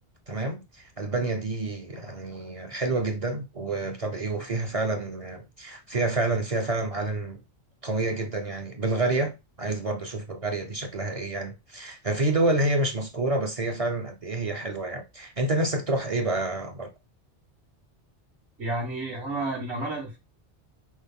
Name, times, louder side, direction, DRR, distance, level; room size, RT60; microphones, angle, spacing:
voice 1, 0.3-7.4 7.8-9.3 9.6-16.9, right 2 dB, 40° right, 0.6 m, -28 dB
voice 2, 18.6-20.2, right 2 dB, 70° right, 1.7 m, -31 dB
6.1 x 2.1 x 3.6 m
omnidirectional pair, 1.2 m